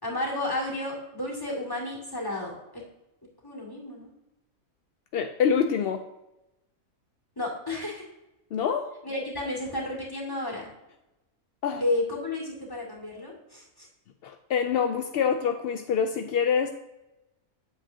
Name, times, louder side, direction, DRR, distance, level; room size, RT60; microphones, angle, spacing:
voice 1, 0.0-2.8 3.4-4.1 7.4-8.0 9.0-10.7 11.8-13.9, left 2 dB, 15° left, -2 dB, 2.2 m, -32 dB
voice 2, 5.1-6.0 8.5-8.9 11.6-11.8 14.2-16.7, left 7 dB, 70° left, 6 dB, 0.5 m, -26 dB
8.4 x 7.5 x 2.7 m, 0.93 s
omnidirectional pair, 1.5 m